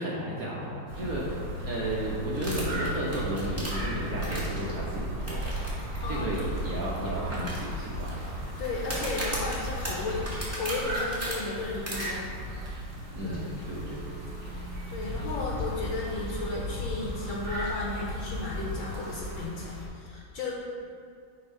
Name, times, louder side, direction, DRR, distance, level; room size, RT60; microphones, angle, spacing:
voice 1, 0.0-8.2 13.1-14.3, right 1 dB, 60° right, -5 dB, 1.0 m, -34 dB
sound 1, 0.9-19.5, right 1 dB, 75° right, 2.4 m, -36 dB
sound 2, 2.4-4.7 5.3-5.7 6.0-6.1 6.6-6.7 7.3-8.1 8.8-11.3 11.9-12.1, right 1 dB, 10° right, 1.3 m, -36 dB
sound 3, 3.0-19.9, left 2 dB, 45° left, 0.7 m, -40 dB
voice 2, 6.0-6.5 8.6-12.3 13.2-13.4 14.9-20.5, left 3 dB, 70° left, -3 dB, 1.4 m, -34 dB
7.9 x 2.9 x 5.3 m, 2.4 s
omnidirectional pair, 2.3 m